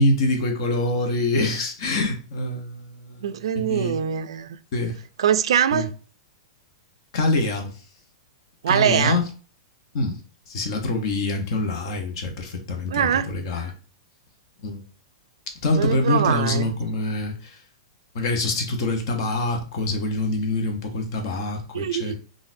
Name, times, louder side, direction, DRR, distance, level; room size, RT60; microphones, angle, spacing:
voice 1, 0.0-3.3 3.5-4.0 4.7-5.0 5.7-5.9 7.1-7.7 8.7-9.3 9.9-10.2 10.5-13.7 14.6-14.8 15.6-17.6 18.1-22.2, left 2 dB, 60° left, 1.0 m, -25 dB
voice 2, 3.2-4.6 5.2-5.9 8.6-9.2 12.9-13.3 15.8-16.7 21.7-22.2, right 9 dB, 80° right, 0.3 m, -23 dB
3.9 x 2.5 x 2.6 m
hypercardioid pair, 130°, 3 cm